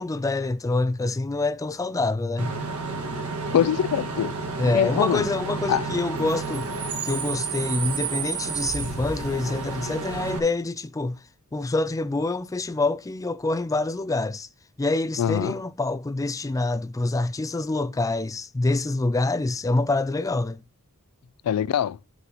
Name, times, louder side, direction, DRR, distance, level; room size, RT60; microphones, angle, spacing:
voice 1, 0.0-2.5 4.6-6.7 7.0-11.2 11.5-14.5 14.8-20.6, left 2 dB, 15° left, 0.3 m, -26 dB
Bus / Idling / Screech, 2.4-10.4, right 4 dB, 70° right, 1.8 m, -31 dB
voice 2, 3.5-4.3 4.7-5.3 5.7-5.8 15.2-15.6 21.5-22.0, left 9 dB, 90° left, 0.3 m, -23 dB
11.0 x 6.7 x 2.9 m
head